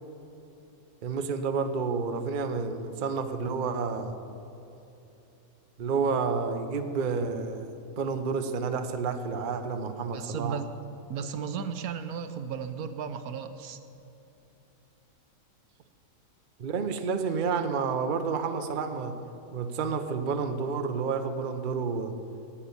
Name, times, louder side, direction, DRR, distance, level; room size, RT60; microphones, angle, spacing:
voice 1, 1.0-4.1 5.8-7.7 8.0-10.6 16.6-19.2 19.5-22.2, right 5 dB, 45° right, 8 dB, 0.7 m, -30 dB
voice 2, 10.1-10.7 11.1-13.8, right 7 dB, 75° right, 9 dB, 1.1 m, -35 dB
10.0 x 8.4 x 8.4 m, 2.9 s
omnidirectional pair, 1.6 m